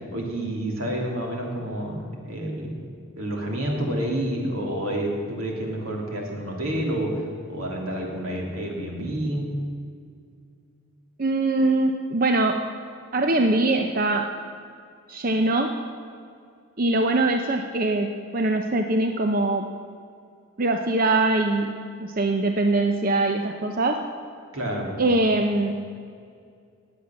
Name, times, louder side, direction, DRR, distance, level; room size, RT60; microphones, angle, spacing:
voice 1, 0.1-2.9 3.1-7.2 7.5-9.5 24.5-24.9, right 1 dB, 80° right, -1 dB, 3.3 m, -29 dB
voice 2, 11.2-12.7 13.1-14.3 15.1-15.8 16.8-19.7 20.6-24.0 25.0-26.0, right 2 dB, 40° right, 5 dB, 0.7 m, -23 dB
19.0 x 8.0 x 7.3 m, 2.3 s
head